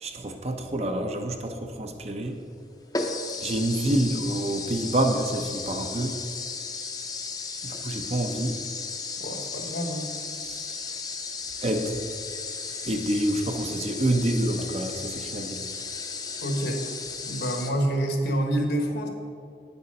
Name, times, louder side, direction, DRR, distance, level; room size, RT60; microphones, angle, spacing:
voice 1, 0.0-2.4 3.4-6.2 7.6-8.6 10.4-10.7 11.6-12.0 12.9-15.6, right 1 dB, 35° right, 5 dB, 0.7 m, -27 dB
sound 1, 2.3-2.4 2.9-17.7, left 4 dB, 20° left, 0.6 m, -35 dB
voice 2, 9.2-10.2 16.4-16.8 17.3-19.1, right 1 dB, 70° left, 3 dB, 1.3 m, -27 dB
9.0 x 6.9 x 5.4 m, 2.4 s
head